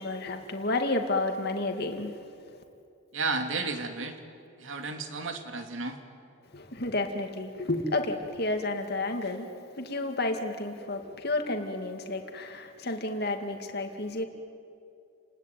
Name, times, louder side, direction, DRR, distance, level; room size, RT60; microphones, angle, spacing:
voice 1, 0.0-2.2 6.5-14.2, left 2 dB, 50° left, 5 dB, 2.4 m, -31 dB
voice 2, 3.1-4.2 4.6-6.0, right 3 dB, 70° right, 6 dB, 2.6 m, -32 dB
30.0 x 20.0 x 9.2 m, 2.5 s
head